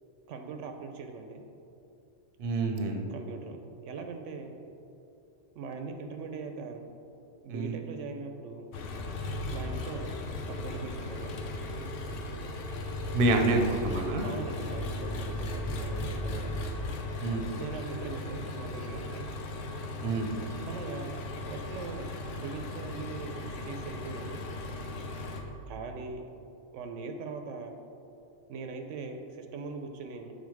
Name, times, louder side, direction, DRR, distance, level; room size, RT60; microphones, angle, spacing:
voice 1, 0.3-1.4 3.1-3.6 3.8-4.5 5.6-6.9 7.4-8.7 9.5-10.2 10.5-11.4 14.2-16.6 17.6-19.3 20.6-21.2 21.5-22.1 22.3-24.4 25.7-26.2 26.7-27.8 28.5-30.3, right 4 dB, 85° right, 5 dB, 0.9 m, -41 dB
voice 2, 2.4-3.1 7.5-7.8 13.1-14.3 17.2-17.5 20.0-20.4, right 2 dB, 55° right, 3 dB, 0.8 m, -27 dB
Engine, 8.7-25.4, left 1 dB, 85° left, 1.0 m, -36 dB
7.3 x 4.0 x 4.7 m, 2.7 s
omnidirectional pair, 1.2 m